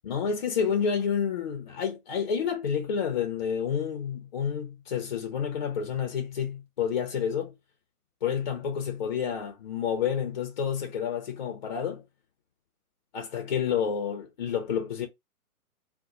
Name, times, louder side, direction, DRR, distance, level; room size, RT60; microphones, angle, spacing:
voice 1, 0.0-7.5 8.2-12.0 13.1-15.1, left 7 dB, 30° left, 0.6 m, -29 dB
2.5 x 2.2 x 2.9 m
figure-of-eight pair, 130°, 45 cm